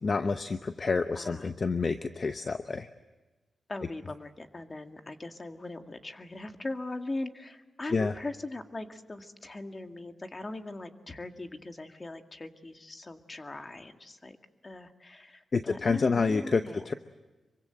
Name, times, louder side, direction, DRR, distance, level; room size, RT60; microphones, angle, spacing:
voice 1, 0.0-2.9 7.9-8.1 15.5-16.9, left 4 dB, 40° left, 9 dB, 0.9 m, -28 dB
voice 2, 1.1-1.5 3.7-14.4 14.6-16.9, left 2 dB, 25° left, 7 dB, 2.0 m, -40 dB
26.5 x 24.0 x 7.8 m, 1.2 s
wide cardioid pair, 120°, 0 cm